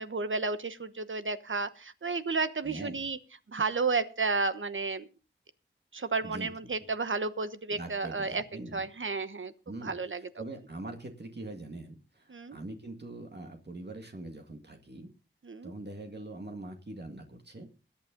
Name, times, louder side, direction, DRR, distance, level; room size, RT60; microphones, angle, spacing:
voice 1, 0.0-3.2 3.5-5.1 5.9-8.4 8.7-9.5 9.8-10.2 12.3-12.6 15.4-15.7, right 4 dB, 75° right, 11 dB, 1.1 m, -32 dB
voice 2, 2.6-3.1 6.2-6.7 7.7-8.8 9.7-15.1 15.6-17.7, right 2 dB, 55° right, 3 dB, 2.1 m, -43 dB
21.5 x 8.8 x 3.8 m, 0.33 s
wide cardioid pair, 70°, 20 cm